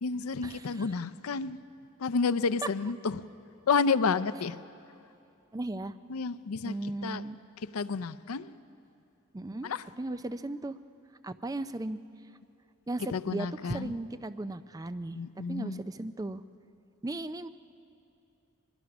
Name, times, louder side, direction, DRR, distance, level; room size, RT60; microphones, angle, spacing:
voice 1, 0.0-1.6 2.0-3.2 3.7-4.6 6.1-7.2 7.6-8.5 9.6-9.9 13.1-14.0 15.1-15.8, left 5 dB, 85° left, 0.5 m, -30 dB
voice 2, 5.5-5.9 6.6-7.4 9.3-9.7 10.0-10.8 11.2-12.0 12.9-15.2 15.5-16.4 17.0-17.5, right 2 dB, 15° right, 0.4 m, -36 dB
23.0 x 21.5 x 6.1 m
head